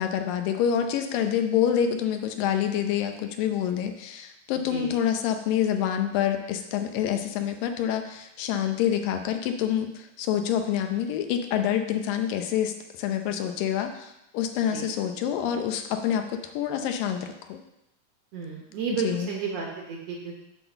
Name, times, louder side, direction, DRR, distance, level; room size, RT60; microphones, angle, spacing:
voice 1, 0.0-17.6 18.9-19.3, left 9 dB, 90° left, 6 dB, 2.5 m, -27 dB
voice 2, 18.3-20.4, right 6 dB, 65° right, -1 dB, 1.8 m, -32 dB
8.2 x 4.0 x 6.8 m, 0.87 s
omnidirectional pair, 3.9 m